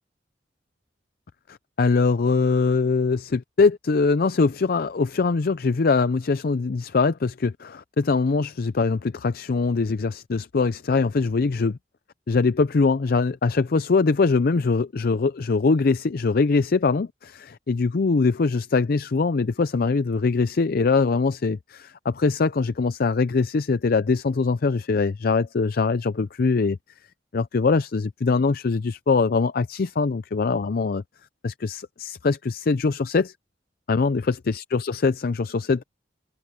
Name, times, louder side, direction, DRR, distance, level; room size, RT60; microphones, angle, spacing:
voice 1, 1.5-11.8 12.3-26.8 27.3-31.0 31.4-33.3 33.9-35.8, left 4 dB, 55° left, 0.5 m, -22 dB
head